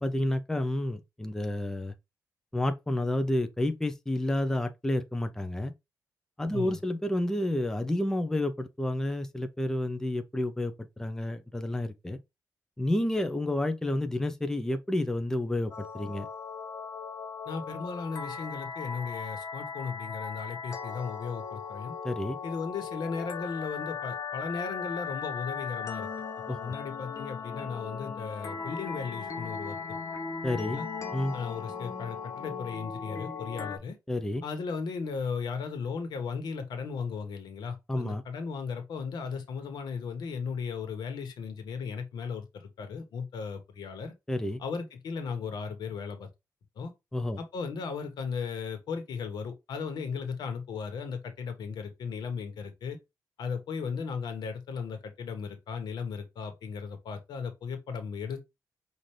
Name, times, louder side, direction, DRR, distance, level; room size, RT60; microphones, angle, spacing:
voice 1, 0.0-1.9 2.5-5.7 6.4-12.2 12.8-16.3 22.0-22.4 26.5-26.7 30.4-30.8 31.1-31.3 34.1-34.4 37.9-38.2 44.3-44.6 47.1-47.4, left 1 dB, 5° left, 0.5 m, -30 dB
sound 1, 15.7-33.8, left 5 dB, 45° left, 0.9 m, -38 dB
voice 2, 17.4-21.9 22.4-26.1 26.5-30.0 30.5-30.9 31.3-34.0 34.4-44.1 44.6-46.3 46.8-46.9 47.4-53.0 53.4-58.5, left 5 dB, 85° left, 1.2 m, -36 dB
5.7 x 2.6 x 3.2 m
wide cardioid pair, 125°, 7 cm